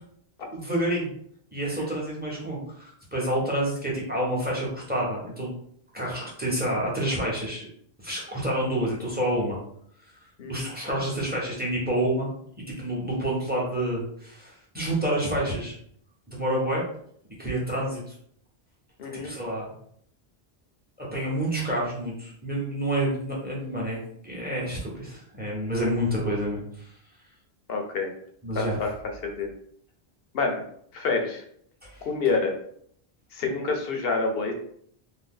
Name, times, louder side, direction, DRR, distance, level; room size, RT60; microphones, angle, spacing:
voice 1, 0.5-1.1 1.5-5.5 5.9-7.7 8.0-9.6 10.5-12.3 12.7-15.7 16.3-16.8 17.4-18.0 19.2-19.7 21.0-24.0 24.2-26.6 28.4-28.8 31.8-32.0, right 1 dB, 10° right, -5 dB, 0.9 m, -28 dB
voice 2, 10.4-10.7 19.0-19.3 25.8-25.9 27.7-28.1 28.5-28.9 29.2-29.5 30.3-30.7 30.9-31.4 32.0-32.5 33.3-34.5, left 4 dB, 70° left, 3 dB, 0.9 m, -27 dB
2.7 x 2.1 x 3.7 m, 0.65 s
omnidirectional pair, 1.0 m